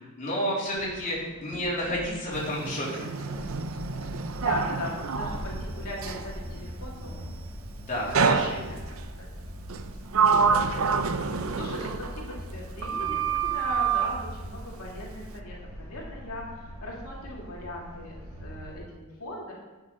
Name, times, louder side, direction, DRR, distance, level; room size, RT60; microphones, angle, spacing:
voice 1, 0.0-3.1 7.9-8.6, equal, 35° left, -6 dB, 3.3 m, -30 dB
sound 1, 0.7-18.8, equal, 25° right, 3.4 m, -41 dB
Sliding door, 2.3-6.3 8.1-9.0 9.7-12.6 12.8-14.1, right 5 dB, 65° right, 0.6 m, -27 dB
voice 2, 4.4-7.3 8.2-8.8 9.2-9.3 10.5-10.9 11.2-19.5, left 1 dB, 85° left, -3 dB, 2.4 m, -39 dB
9.4 x 6.6 x 5.7 m, 1.2 s
head